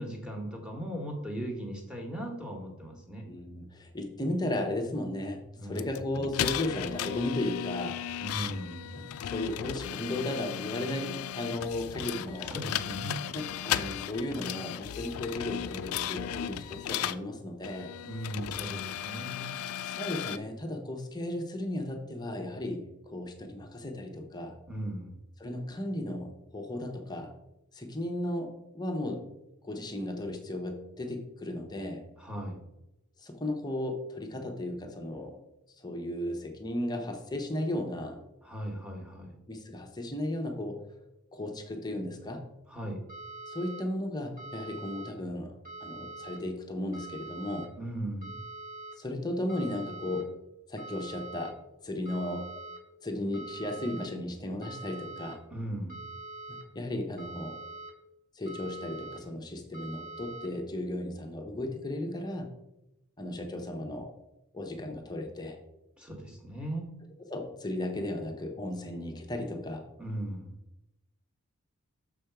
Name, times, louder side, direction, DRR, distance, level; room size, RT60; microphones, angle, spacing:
voice 1, 0.0-3.2 5.6-6.0 8.2-8.9 12.4-13.2 18.0-19.5 24.7-25.1 32.2-32.6 38.4-39.4 42.7-43.0 47.7-48.4 55.5-56.0 66.0-66.9 70.0-70.5, right 1 dB, 5° right, 1 dB, 1.3 m, -38 dB
voice 2, 3.3-8.0 8.9-12.5 13.3-17.9 19.8-24.5 25.4-27.3 27.7-28.5 28.7-29.3 29.6-32.0 33.2-35.4 35.8-38.2 39.5-40.8 41.3-42.5 43.5-45.5 45.8-47.7 49.0-50.3 50.7-51.5 51.8-52.5 53.0-55.4 56.5-57.6 58.3-62.5 63.2-64.1 64.5-65.6 67.3-69.8, left 1 dB, 20° left, 3 dB, 0.8 m, -35 dB
sound 1, 5.8-17.2 17.6-20.4, left 10 dB, 70° left, 0.3 m, -36 dB
sound 2, 43.1-43.8 44.4-45.1 45.6-46.4 46.9-47.7 48.2-48.9 49.5-50.2 50.8-51.5 52.0-52.8 53.3-54.1 54.6-55.3 55.9-56.6 57.2-57.9 58.5-59.2 59.7-60.5, right 3 dB, 40° right, 1.7 m, -44 dB
6.6 x 5.1 x 4.7 m, 0.89 s
head